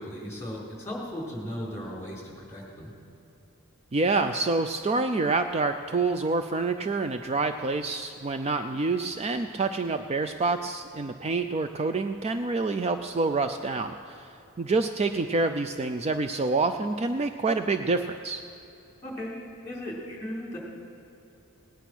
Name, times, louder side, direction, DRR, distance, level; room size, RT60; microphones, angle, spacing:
voice 1, 0.0-2.9 19.0-19.4 19.6-20.6, equal, 15° left, -3 dB, 3.7 m, -36 dB
voice 2, 3.9-18.4, right 3 dB, 30° right, 8 dB, 0.4 m, -27 dB
18.0 x 10.0 x 6.1 m, 2.8 s
head